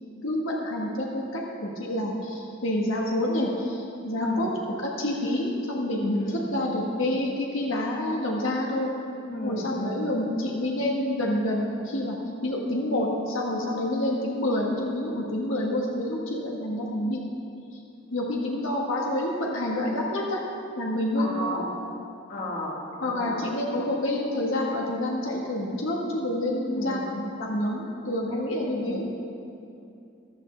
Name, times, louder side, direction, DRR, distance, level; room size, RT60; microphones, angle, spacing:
voice 1, 0.2-4.5 5.0-8.9 9.4-12.1 12.4-17.2 18.1-20.4 20.8-21.6 23.0-29.1, left 1 dB, 70° left, -2 dB, 1.3 m, -28 dB
voice 2, 4.2-4.5 6.3-6.5 9.2-10.1 21.2-21.7 22.3-22.8 23.1-23.4 26.7-27.0 28.6-29.0, equal, 50° left, -1 dB, 1.5 m, -34 dB
13.5 x 12.0 x 3.3 m, 2.6 s
head